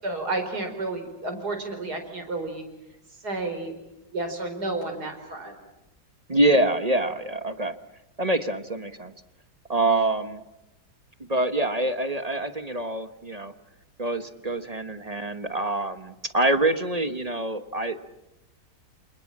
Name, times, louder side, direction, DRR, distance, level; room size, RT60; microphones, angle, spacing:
voice 1, 0.0-2.6 3.2-3.7 4.1-5.5, right 2 dB, 65° right, 6 dB, 5.2 m, -31 dB
voice 2, 6.3-7.8 8.2-9.1 9.7-10.4 11.3-13.5 14.0-18.0, right 2 dB, 25° right, 10 dB, 1.1 m, -25 dB
28.0 x 28.0 x 7.5 m, 0.95 s
omnidirectional pair, 1.8 m